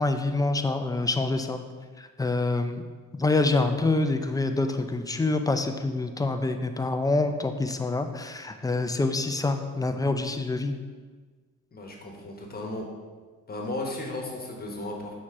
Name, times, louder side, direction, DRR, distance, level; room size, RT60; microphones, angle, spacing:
voice 1, 0.0-1.6 2.0-2.8 3.1-10.7, left 2 dB, 10° left, 7 dB, 0.4 m, -26 dB
voice 2, 11.7-12.9 13.5-15.1, left 2 dB, 30° left, 0 dB, 1.2 m, -35 dB
6.3 x 4.3 x 3.7 m, 1.4 s
cardioid pair, 90°, 30 cm